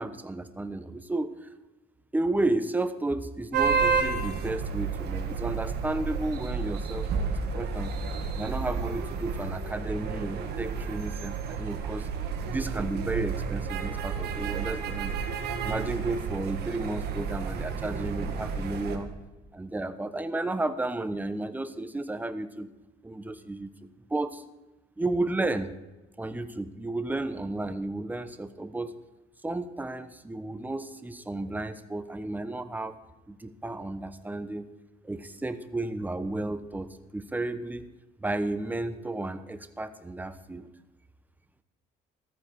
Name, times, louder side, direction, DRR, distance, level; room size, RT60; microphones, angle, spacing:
voice 1, 0.0-1.5 2.1-7.9 8.3-12.1 12.5-15.2 15.6-19.1 19.5-22.7 23.0-24.4 25.0-25.7 26.2-29.0 29.4-33.0 33.3-34.7 35.0-37.9 38.2-40.7, right 2 dB, 10° right, 10 dB, 1.0 m, -32 dB
sound 1, 3.5-19.0, right 5 dB, 75° right, 2.1 m, -31 dB
14.5 x 14.0 x 4.8 m, 1.1 s
cardioid pair, 110°, 17 cm